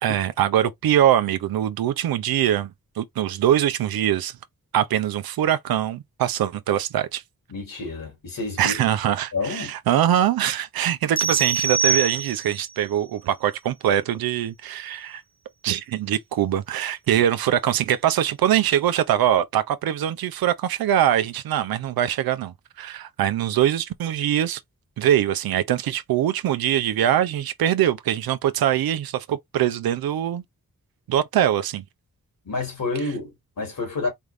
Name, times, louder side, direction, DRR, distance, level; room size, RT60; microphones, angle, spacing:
voice 1, 0.0-2.7 3.0-4.3 4.7-7.2 8.6-15.2 15.6-24.6 25.0-30.4 31.1-31.8, right 11 dB, 85° right, 0.5 m, -23 dB
voice 2, 7.5-8.7 9.3-9.7 32.4-34.1, left 3 dB, 70° left, 2.8 m, -29 dB
sound 1, 11.2-12.7, right 6 dB, 15° right, 0.6 m, -24 dB
4.5 x 2.4 x 3.4 m
cardioid pair, 55°, 35 cm